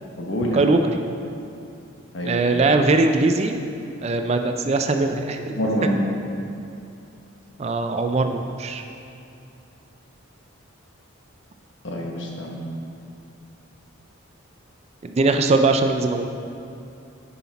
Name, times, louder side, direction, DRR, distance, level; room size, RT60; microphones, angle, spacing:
voice 1, 0.2-0.7 2.1-2.4 5.5-6.1 11.8-12.7, equal, 60° left, -1 dB, 1.1 m, -26 dB
voice 2, 2.2-3.6 4.0-5.9 7.6-8.8 15.0-16.3, right 3 dB, 30° right, 6 dB, 0.3 m, -21 dB
9.8 x 5.8 x 4.0 m, 2.6 s
head